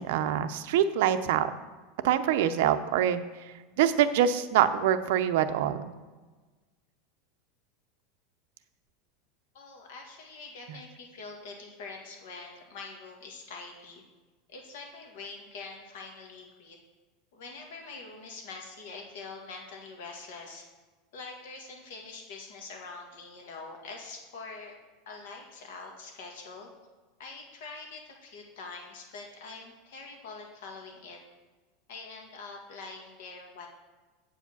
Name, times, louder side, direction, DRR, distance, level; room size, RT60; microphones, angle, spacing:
voice 1, 0.0-1.5 2.0-5.9 10.7-10.8, right 10 dB, 65° right, 9 dB, 0.6 m, -25 dB
voice 2, 9.5-14.0 14.5-16.8 17.3-20.6 21.1-24.7 25.0-26.7 27.2-31.2 31.9-33.7, left 4 dB, 70° left, 1 dB, 1.7 m, -44 dB
8.2 x 4.9 x 7.0 m, 1.3 s
supercardioid pair, 175°, 0 cm